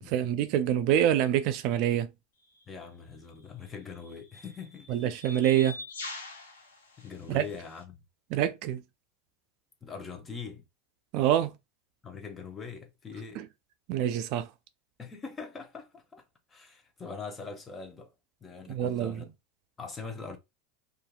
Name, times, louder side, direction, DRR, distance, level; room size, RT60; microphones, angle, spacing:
voice 1, 0.1-2.1 4.9-5.8 7.3-7.5 8.3-8.8 11.1-11.5 13.4-13.5 13.9-14.5 18.7-19.2, right 11 dB, 60° right, 0.3 m, -26 dB
sound 1, 2.4-2.6 3.6-7.8, left 3 dB, 85° left, 1.0 m, -45 dB
voice 2, 2.7-5.0 7.0-8.0 9.8-10.6 12.0-13.4 15.0-16.2 16.5-18.1 18.4-19.3 19.8-20.4, left 5 dB, 20° left, 0.7 m, -42 dB
2.7 x 2.4 x 2.3 m
hypercardioid pair, 100°, 0 cm